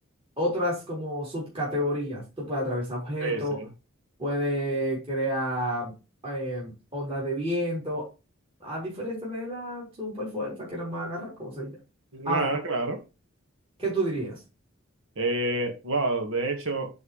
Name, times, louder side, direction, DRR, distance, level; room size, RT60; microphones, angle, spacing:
voice 1, 0.4-3.6 4.2-5.9 6.2-8.1 8.6-11.7 12.2-12.5 13.8-14.4, equal, 25° right, 4.1 m, -30 dB
voice 2, 12.1-13.0 15.2-16.9, right 2 dB, 65° right, 2.1 m, -28 dB
9.8 x 4.8 x 3.5 m
head